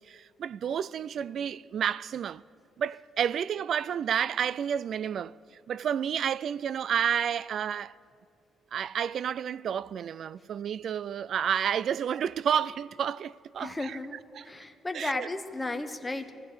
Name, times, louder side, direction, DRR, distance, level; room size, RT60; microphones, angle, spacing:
voice 1, 0.0-2.4 2.8-5.3 5.7-8.0 8.7-14.0 14.4-14.5 14.9-15.3, right 8 dB, 65° right, 0.3 m, -30 dB
voice 2, 13.6-14.2 14.4-16.3, left 2 dB, 15° left, 1.0 m, -34 dB
19.5 x 15.0 x 4.8 m
cardioid pair, 90°, 0 cm